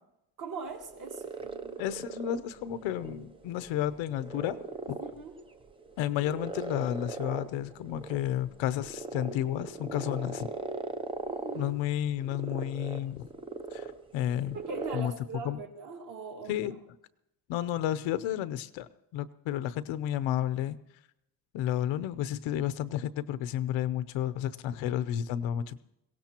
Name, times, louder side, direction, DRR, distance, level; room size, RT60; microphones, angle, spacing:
voice 1, 0.4-1.8 5.0-5.3 11.3-11.7 14.5-16.7, right 4 dB, 40° right, 2.2 m, -41 dB
sound 1, 0.7-15.0, right 3 dB, 10° right, 0.5 m, -40 dB
voice 2, 1.8-4.6 4.9-5.0 6.0-10.5 11.5-13.3 13.7-14.6 14.9-15.1 15.4-15.6 16.5-16.8 17.5-20.8 21.5-25.8, left 11 dB, 75° left, 0.8 m, -32 dB
22.5 x 17.5 x 2.9 m
cardioid pair, 165°, 46 cm